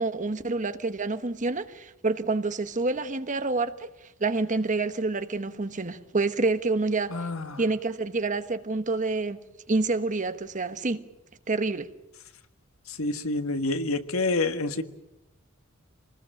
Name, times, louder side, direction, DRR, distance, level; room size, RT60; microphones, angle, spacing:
voice 1, 0.0-3.9 4.2-7.1 7.6-9.4 9.7-11.0 11.5-11.9, right 3 dB, 35° right, 1.2 m, -27 dB
voice 2, 7.1-7.6 12.9-14.8, left 2 dB, 80° left, 1.6 m, -28 dB
26.0 x 20.5 x 9.0 m
head